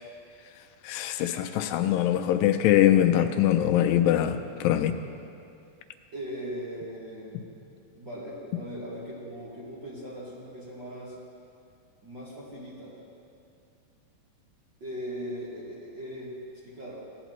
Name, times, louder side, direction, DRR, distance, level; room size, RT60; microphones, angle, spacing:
voice 1, 0.8-4.9, left 11 dB, 85° left, 7 dB, 2.3 m, -23 dB
voice 2, 6.1-7.4 7.9-11.1 12.0-13.0 14.8-16.3 16.6-17.0, equal, 45° right, -7 dB, 1.6 m, -39 dB
17.0 x 9.8 x 3.1 m, 2.5 s
omnidirectional pair, 4.0 m